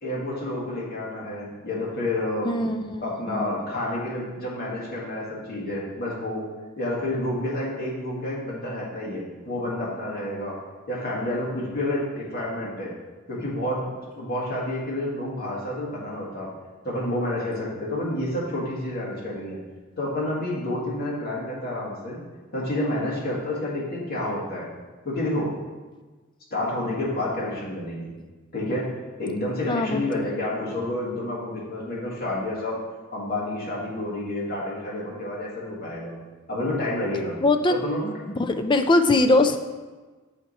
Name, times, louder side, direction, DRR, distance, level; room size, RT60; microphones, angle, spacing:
voice 1, 0.0-2.5 3.0-6.4 6.8-10.6 10.9-12.9 13.3-13.9 14.2-16.5 16.8-19.6 20.0-22.2 22.5-24.7 25.0-25.5 26.5-28.1 28.5-28.9 29.2-32.8 33.1-36.1 36.5-37.4 37.7-38.0, left 1 dB, 50° left, -6 dB, 1.9 m, -29 dB
voice 2, 2.4-3.0 3.3-3.5 29.7-30.2 37.4-37.8 38.0-38.1 38.4-39.6, left 2 dB, 25° left, 8 dB, 0.4 m, -21 dB
7.2 x 4.6 x 4.1 m, 1.3 s
head